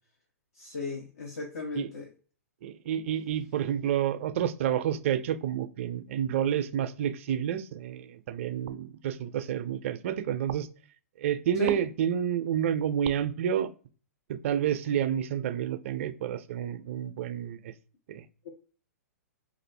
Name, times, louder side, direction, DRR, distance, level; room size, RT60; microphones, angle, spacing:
voice 1, 0.6-2.1 11.6-11.8 18.4-18.5, left 3 dB, 65° left, 0.7 m, -35 dB
voice 2, 2.6-10.7 11.2-13.7 14.3-17.7 18.1-18.2, right 9 dB, 55° right, 0.4 m, -29 dB
2.5 x 2.4 x 3.2 m
figure-of-eight pair, 110°, 8 cm